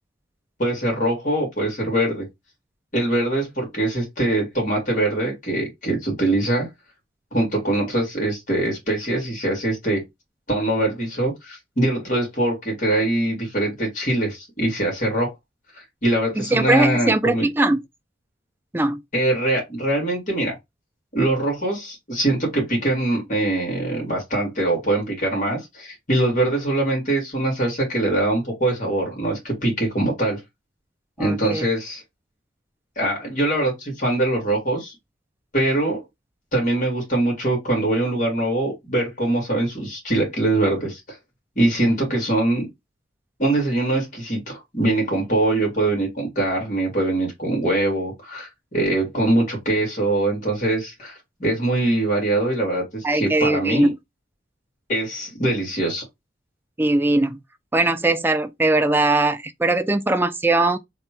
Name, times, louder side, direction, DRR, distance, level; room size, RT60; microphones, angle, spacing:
voice 1, 0.6-2.2 2.9-6.7 7.3-10.0 10.5-15.3 15.7-17.5 19.1-20.5 21.1-30.4 31.2-32.0 33.0-35.0 35.5-36.0 36.5-41.2 41.6-42.7 43.4-53.9 54.9-56.0, right 1 dB, 40° left, 2.0 m, -23 dB
voice 2, 16.4-17.8 18.7-19.0 31.2-31.6 53.0-53.9 56.8-57.4 57.7-60.8, right 2 dB, 10° right, 0.4 m, -20 dB
3.4 x 2.3 x 4.4 m
head